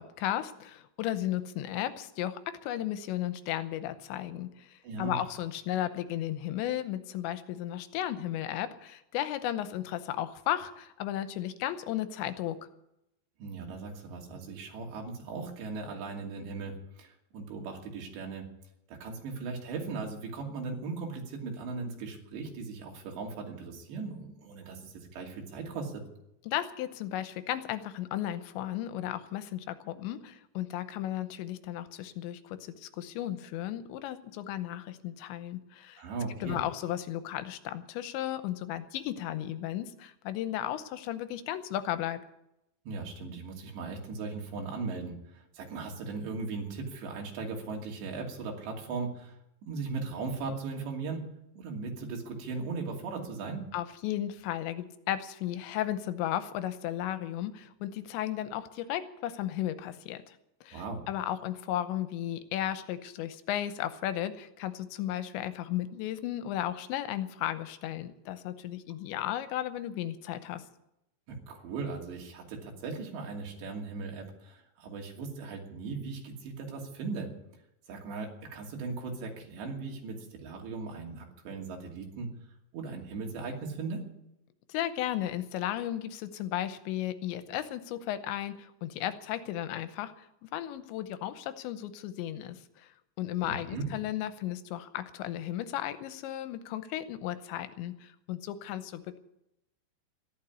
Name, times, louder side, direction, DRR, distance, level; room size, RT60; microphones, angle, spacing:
voice 1, 0.0-12.6 26.5-36.0 36.4-42.2 53.7-60.4 60.6-70.6 84.7-92.9 93.2-99.2, left 12 dB, 85° left, 11 dB, 3.1 m, -35 dB
voice 2, 4.8-5.2 13.4-18.5 18.9-26.0 36.0-36.6 42.9-53.7 60.7-61.0 71.3-77.3 77.9-82.3 82.7-84.0 93.4-93.9, right 4 dB, 75° right, 1 dB, 4.8 m, -38 dB
14.0 x 12.0 x 8.5 m, 0.84 s
omnidirectional pair, 5.1 m